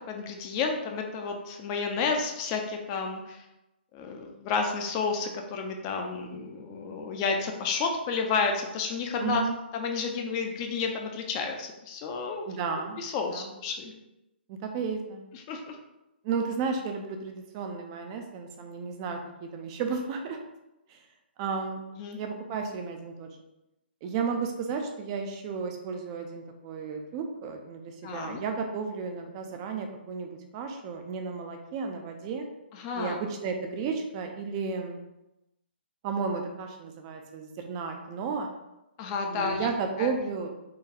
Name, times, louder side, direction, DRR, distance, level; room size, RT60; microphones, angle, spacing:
voice 1, 0.1-3.4 3.9-9.4 9.7-12.4 13.0-13.9 15.3-15.8 22.0-22.2 28.0-28.4 32.7-33.2 39.0-39.7 40.0-40.1, left 5 dB, 30° left, 3 dB, 0.6 m, -31 dB
voice 2, 9.2-9.6 12.5-13.0 13.3-13.5 14.5-15.2 16.2-20.4 20.9-21.0 21.4-21.8 22.2-23.4 24.0-32.5 32.9-35.0 36.0-38.5 39.2-40.5, right 5 dB, 30° right, 4 dB, 0.5 m, -33 dB
3.9 x 2.3 x 4.3 m, 0.94 s
hypercardioid pair, 140°, 6 cm